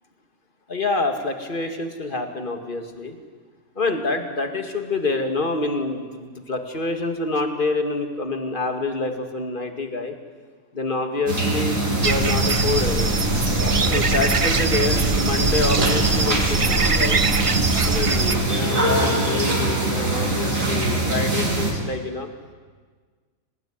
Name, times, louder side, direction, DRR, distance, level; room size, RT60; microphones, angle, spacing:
voice 1, 0.7-3.2 3.8-10.1 10.7-13.1 13.8-17.2 17.8-22.3, left 3 dB, 35° left, 6 dB, 2.4 m, -27 dB
sound 1, 11.3-21.7, right 2 dB, 65° right, 4.8 m, -23 dB
sound 2, 12.0-18.4, right 4 dB, 30° right, 0.7 m, -23 dB
25.5 x 19.0 x 9.6 m, 1.5 s
omnidirectional pair, 1.6 m